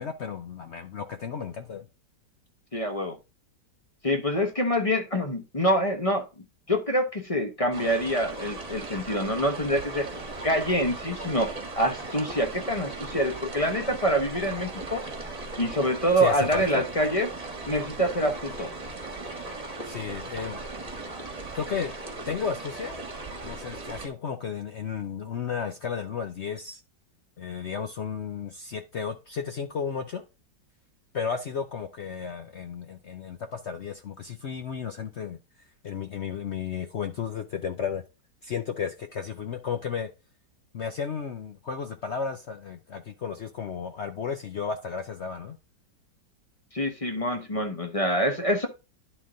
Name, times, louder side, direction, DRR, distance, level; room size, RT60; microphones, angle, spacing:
voice 1, 0.0-1.9 16.2-16.8 19.8-20.6 21.5-21.9 22.3-23.0 23.4-26.8 27.4-30.2 31.1-35.4 35.8-38.0 38.4-40.1 40.7-45.6, left 6 dB, 65° left, 0.7 m, -33 dB
voice 2, 2.7-3.2 4.0-6.3 6.7-10.1 10.4-15.0 15.6-17.3 17.7-18.7 46.7-48.7, equal, 25° left, 0.7 m, -26 dB
sound 1, 7.7-24.1, right 2 dB, 25° right, 1.2 m, -38 dB
11.0 x 4.0 x 3.6 m
omnidirectional pair, 1.9 m